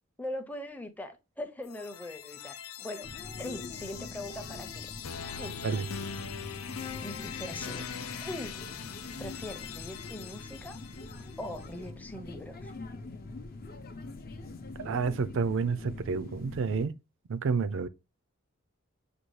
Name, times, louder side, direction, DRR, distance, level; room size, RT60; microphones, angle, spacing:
voice 1, 0.2-3.1 3.4-4.9 5.3-5.5 7.0-7.8 8.2-8.6 9.2-10.8 11.1-12.7, left 1 dB, 10° left, 0.6 m, -41 dB
sound 1, 1.6-11.6, left 7 dB, 85° left, 0.5 m, -42 dB
sound 2, 3.0-16.9, left 2 dB, 45° left, 0.6 m, -44 dB
voice 2, 14.8-16.9 17.3-17.9, right 5 dB, 65° right, 0.4 m, -29 dB
6.8 x 2.3 x 3.1 m
head